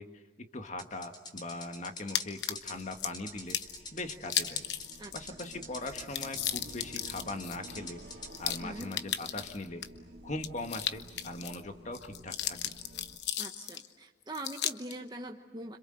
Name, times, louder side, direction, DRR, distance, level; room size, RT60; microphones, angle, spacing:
voice 1, 0.0-3.6 3.9-4.6 5.1-8.0 8.4-9.8 10.2-12.6, left 2 dB, 45° left, 6 dB, 1.6 m, -40 dB
sound 1, 0.8-8.3, left 2 dB, 25° left, 3.9 m, -45 dB
sound 2, 2.1-3.1 3.5-3.8 4.2-5.2 5.4-5.5 5.8-9.9 10.4-11.6 11.9-13.9 14.3-14.9, left 11 dB, 75° left, 1.0 m, -35 dB
sound 3, 2.3-13.2, right 1 dB, 65° right, 1.9 m, -52 dB
voice 2, 8.6-8.9 13.4-15.8, right 1 dB, 25° right, 2 dB, 1.2 m, -42 dB
26.5 x 26.5 x 7.8 m, 1.2 s
head